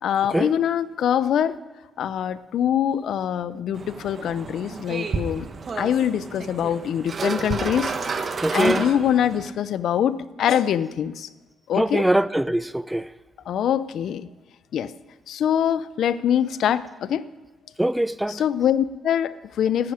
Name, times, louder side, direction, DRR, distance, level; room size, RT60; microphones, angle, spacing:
voice 1, 0.0-1.5 2.0-5.5 5.8-7.9 8.5-11.3 11.7-12.0 13.5-14.3 14.7-14.9 15.3-17.2 18.3-19.9, left 9 dB, 70° left, 0.5 m, -24 dB
sound 1, 3.7-9.5, right 4 dB, 40° right, 1.2 m, -31 dB
voice 2, 8.4-8.9 11.7-13.1 17.8-18.4, right 1 dB, 5° right, 0.5 m, -22 dB
17.5 x 12.0 x 5.0 m
cardioid pair, 90°, 0 cm